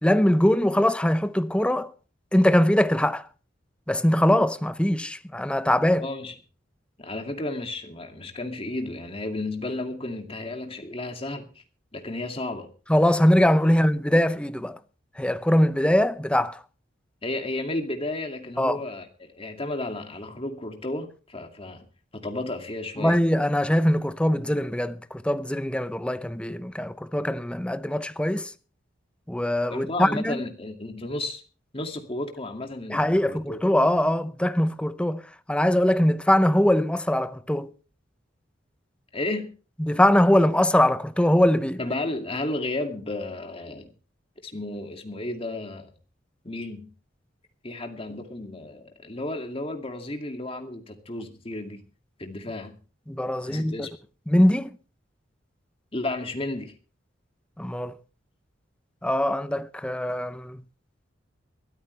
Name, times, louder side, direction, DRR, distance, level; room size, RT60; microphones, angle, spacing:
voice 1, 0.0-1.9 2.3-3.2 3.9-6.1 12.9-14.8 15.2-16.6 18.6-18.8 23.0-28.5 29.3-30.4 32.9-35.2 35.5-37.7 39.8-41.8 53.1-53.9 54.3-54.7 57.6-58.0 59.0-60.6, left 1 dB, 5° left, 0.7 m, -22 dB
voice 2, 6.0-6.3 7.0-11.5 11.9-12.7 13.6-13.7 17.2-21.8 22.1-23.2 29.7-31.4 31.7-33.6 39.1-39.5 41.8-43.9 44.4-45.9 46.4-46.9 47.6-51.8 52.2-52.8 53.5-53.9 55.9-56.7, left 2 dB, 30° left, 2.4 m, -33 dB
22.0 x 13.5 x 3.3 m
head